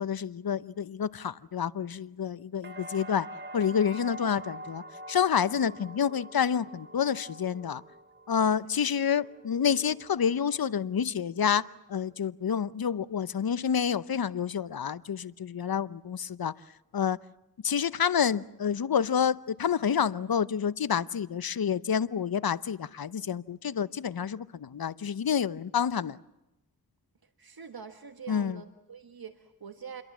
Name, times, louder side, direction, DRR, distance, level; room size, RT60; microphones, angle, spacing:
voice 1, 0.0-3.3 3.5-7.8 8.3-16.5 16.9-17.2 17.6-26.2 28.3-28.6, left 7 dB, 70° left, 17 dB, 0.8 m, -28 dB
sound 1, 2.6-10.5 10.9-11.6, right 1 dB, 30° right, 3.2 m, -46 dB
voice 2, 27.4-30.0, right 6 dB, 70° right, 7 dB, 1.5 m, -44 dB
29.0 x 22.5 x 7.3 m, 0.96 s
wide cardioid pair, 75°, 38 cm